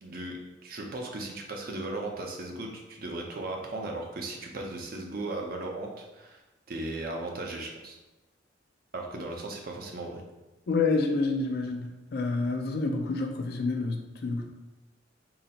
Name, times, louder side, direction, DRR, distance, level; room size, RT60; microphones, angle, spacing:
voice 1, 0.0-6.4 6.7-8.0 8.9-10.2, right 2 dB, 50° right, 1 dB, 0.6 m, -37 dB
voice 2, 10.7-14.5, left 3 dB, 55° left, 4 dB, 0.4 m, -28 dB
3.8 x 2.0 x 4.1 m, 1.1 s
head